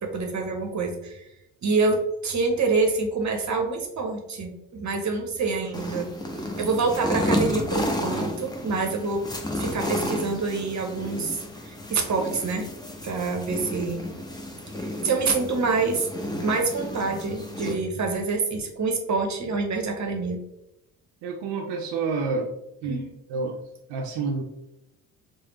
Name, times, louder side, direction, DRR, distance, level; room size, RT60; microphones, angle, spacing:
voice 1, 0.0-1.2 1.6-2.0 2.2-6.1 6.6-9.2 9.6-11.4 11.7-12.7 13.0-14.0 14.8-16.1 16.4-20.4 22.9-23.1, right 4 dB, 40° right, 3 dB, 0.9 m, -26 dB
sound 1, 5.7-17.7, left 1 dB, 10° left, 0.8 m, -32 dB
voice 2, 21.2-22.5 22.8-23.0 23.3-23.6 23.9-24.5, right 4 dB, 65° right, 1 dB, 0.6 m, -28 dB
4.9 x 2.1 x 3.0 m, 0.86 s
hypercardioid pair, 50°, 45 cm